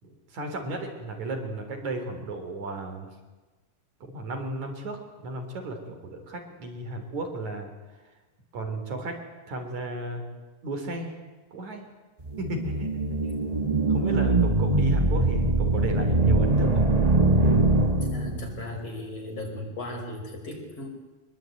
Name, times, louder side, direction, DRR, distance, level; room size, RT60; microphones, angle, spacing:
voice 1, 0.0-3.2 4.1-7.7 8.0-8.1 8.5-9.2 9.5-10.3 10.6-11.1 11.5-11.9 12.4-13.3 13.9-16.8, right 2 dB, 60° right, 4 dB, 5.1 m, -34 dB
sound 1, 12.3-18.6, right 2 dB, 45° right, 0.5 m, -22 dB
voice 2, 18.0-20.9, left 1 dB, 50° left, 2 dB, 6.3 m, -36 dB
25.0 x 22.0 x 9.4 m, 1.2 s
omnidirectional pair, 3.6 m